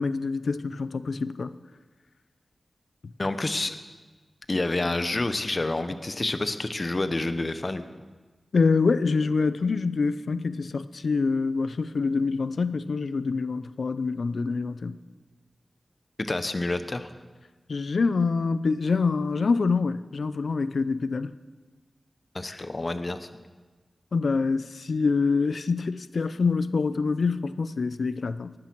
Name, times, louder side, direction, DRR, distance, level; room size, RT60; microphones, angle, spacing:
voice 1, 0.0-1.6 8.5-15.0 17.7-21.3 24.1-28.5, left 4 dB, 75° left, 0.5 m, -26 dB
voice 2, 3.2-3.8 4.5-7.9 16.2-17.1 22.3-23.3, left 2 dB, 40° left, 1.0 m, -28 dB
19.0 x 12.0 x 4.6 m
wide cardioid pair, 75°, 0 cm